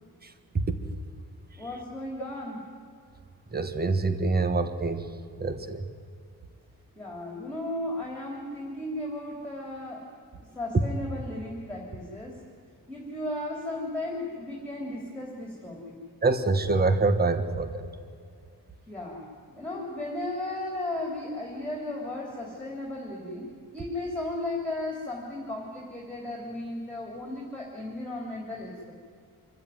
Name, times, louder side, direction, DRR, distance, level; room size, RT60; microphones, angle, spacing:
voice 1, 1.6-2.6 7.0-10.1 10.5-12.3 12.9-16.0 18.9-19.3 19.5-28.9, left 1 dB, 5° left, -2 dB, 3.3 m, -35 dB
voice 2, 3.5-5.0 5.4-5.9 16.2-17.8, right 3 dB, 25° right, 9 dB, 1.4 m, -25 dB
26.0 x 15.0 x 9.4 m, 2.3 s
wide cardioid pair, 155°, 36 cm